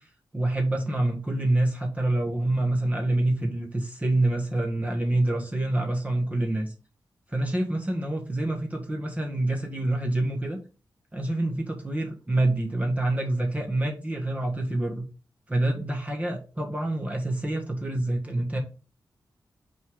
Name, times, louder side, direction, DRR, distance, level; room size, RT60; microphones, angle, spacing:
voice 1, 0.3-6.7 7.3-10.6 11.1-15.0 15.5-18.6, right 1 dB, 20° right, 1 dB, 1.3 m, -26 dB
5.4 x 4.6 x 3.8 m, 0.33 s
cardioid pair, 80°, 8 cm